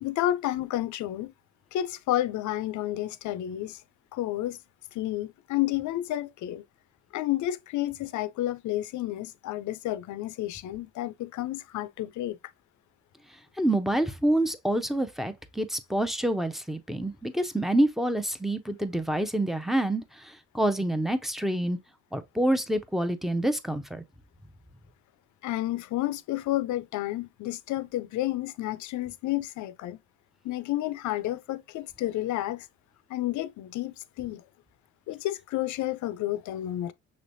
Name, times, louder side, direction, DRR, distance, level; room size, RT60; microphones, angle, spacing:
voice 1, 0.0-1.3 1.7-3.8 4.1-4.6 4.9-6.6 7.1-12.4 25.4-30.0 30.4-32.7 33.1-34.4 35.1-36.9, left 14 dB, 75° left, 0.5 m, -31 dB
voice 2, 13.6-21.8 22.1-24.0, right 1 dB, ahead, 0.6 m, -27 dB
6.1 x 3.2 x 2.6 m
cardioid pair, 90°, 30 cm